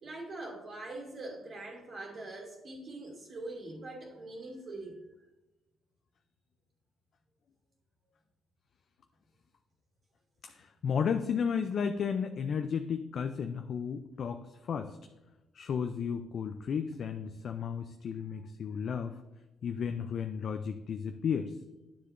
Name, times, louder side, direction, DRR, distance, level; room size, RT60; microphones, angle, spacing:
voice 1, 0.0-5.0, right 2 dB, 50° right, -2 dB, 2.5 m, -43 dB
voice 2, 10.4-15.0 15.5-19.2 19.6-21.5, left 7 dB, 60° left, 7 dB, 0.4 m, -33 dB
9.7 x 6.8 x 2.6 m, 1.1 s
cardioid pair, 90°, 0 cm